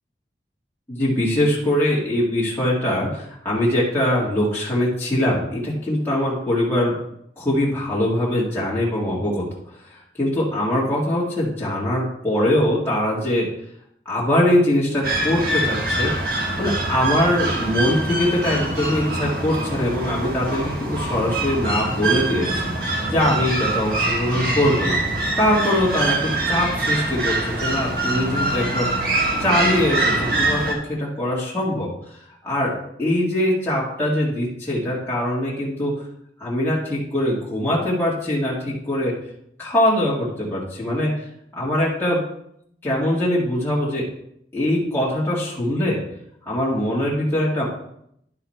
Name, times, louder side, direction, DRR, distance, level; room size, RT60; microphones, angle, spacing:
voice 1, 0.9-6.9 7.4-9.5 9.9-13.5 14.1-16.1 16.6-22.6 23.1-28.9 29.4-31.9 32.4-32.7 33.0-35.9 36.4-39.2 39.6-41.2 41.5-42.2 42.8-44.1 44.5-46.0 46.5-47.6, left 1 dB, 15° left, -8 dB, 1.9 m, -22 dB
sound 1, 15.0-30.7, right 2 dB, 55° right, 1.4 m, -24 dB
11.5 x 4.0 x 4.3 m, 0.73 s
head